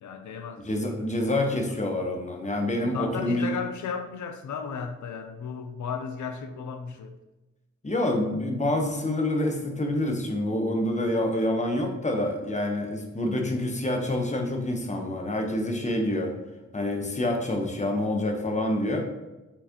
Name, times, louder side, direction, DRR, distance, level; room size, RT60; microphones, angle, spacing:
voice 1, 0.0-1.4 2.9-7.1, left 6 dB, 80° left, 7 dB, 0.5 m, -35 dB
voice 2, 0.6-3.5 7.8-16.3 16.7-19.0, left 1 dB, 25° left, 2 dB, 1.0 m, -27 dB
4.5 x 4.1 x 2.9 m, 1.1 s
cardioid pair, 60°, 30 cm